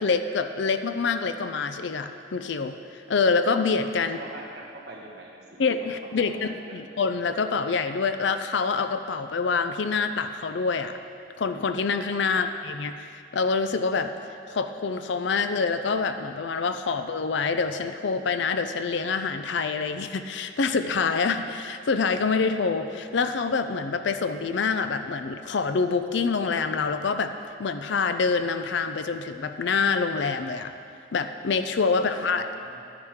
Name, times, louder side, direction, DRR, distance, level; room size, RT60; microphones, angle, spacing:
voice 1, 0.0-4.2 5.6-11.0 11.4-14.1 14.5-27.3 27.6-30.7 31.1-32.4, left 4 dB, 65° left, 9 dB, 0.4 m, -26 dB
voice 2, 4.0-5.6 6.2-6.8 12.3-12.4 31.9-32.1 32.3-32.8, right 1 dB, 55° right, -3 dB, 1.6 m, -43 dB
10.5 x 9.6 x 3.6 m, 2.3 s
head